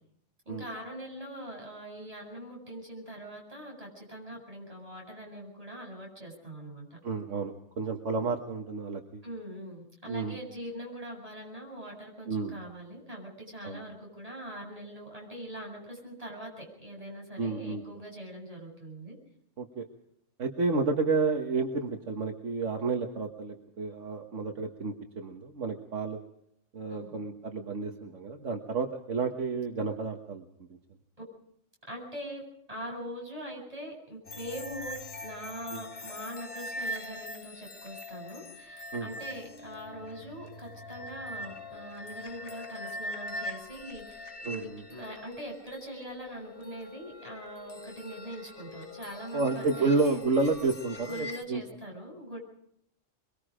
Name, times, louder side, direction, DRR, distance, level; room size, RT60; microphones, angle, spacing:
voice 1, 0.5-7.0 9.2-19.2 26.9-27.2 31.8-50.2 51.0-52.4, equal, 25° right, -1 dB, 7.9 m, -42 dB
voice 2, 7.0-9.2 10.1-10.4 12.3-12.6 13.6-13.8 17.4-17.8 19.6-19.8 20.4-26.2 26.7-30.4 35.7-35.8 38.9-39.1 44.5-44.8 49.3-51.6, right 4 dB, 65° right, 3 dB, 1.8 m, -31 dB
sound 1, 34.3-51.4, left 1 dB, 45° left, 1.4 m, -42 dB
23.5 x 23.0 x 5.0 m, 0.74 s
omnidirectional pair, 1.4 m